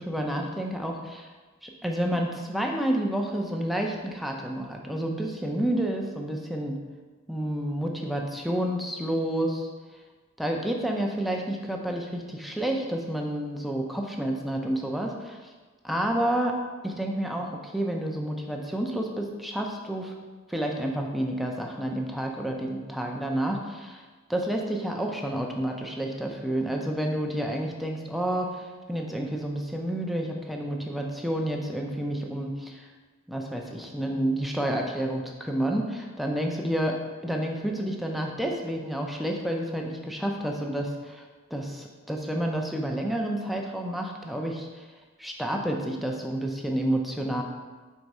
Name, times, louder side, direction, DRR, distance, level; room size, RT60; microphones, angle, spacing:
voice 1, 0.0-1.3 1.6-6.8 7.3-9.7 10.4-15.5 15.8-16.6 16.8-20.1 20.5-24.0 24.3-32.9 33.3-41.3 41.5-44.9 45.2-47.4, right 1 dB, ahead, 0 dB, 0.5 m, -29 dB
4.7 x 3.9 x 5.3 m, 1.3 s
head